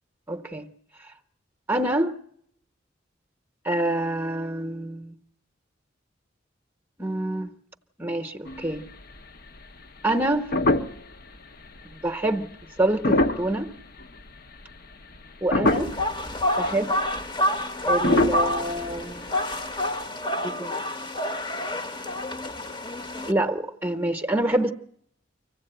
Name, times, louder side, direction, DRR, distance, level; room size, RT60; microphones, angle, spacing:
voice 1, 0.3-0.7 1.7-2.1 3.6-5.2 7.0-7.5 8.0-8.8 10.0-10.5 11.8-12.5 12.8-13.7 15.4-15.9 16.6-16.9 17.9-19.3 20.4-20.8 23.2-24.7, right 1 dB, 10° right, 0.9 m, -26 dB
sound 1, 8.5-9.2 9.6-9.7 10.1-11.2 11.7-11.8 12.8-14.3 14.7-15.2 15.5-16.2 16.6-16.7 16.9-17.1 17.9-19.5 19.8-19.9, left 2 dB, 50° left, 0.9 m, -25 dB
sound 2, 15.7-23.3, left 1 dB, 25° left, 1.0 m, -28 dB
25.0 x 16.0 x 8.9 m
head